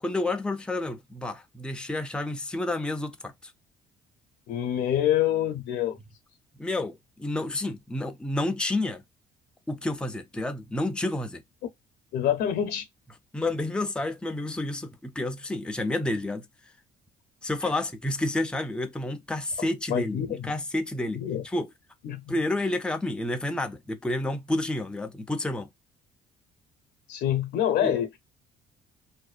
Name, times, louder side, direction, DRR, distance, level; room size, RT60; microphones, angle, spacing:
voice 1, 0.0-3.5 6.6-9.0 9.7-11.4 13.3-16.4 17.4-21.7 22.3-25.7 27.8-28.0, left 2 dB, 5° left, 0.4 m, -30 dB
voice 2, 4.5-6.0 12.1-12.9 17.6-17.7 19.9-20.5 21.1-21.4 22.0-22.3 27.1-28.2, left 10 dB, 75° left, 0.6 m, -26 dB
2.6 x 2.1 x 2.4 m
cardioid pair, 110°, 17 cm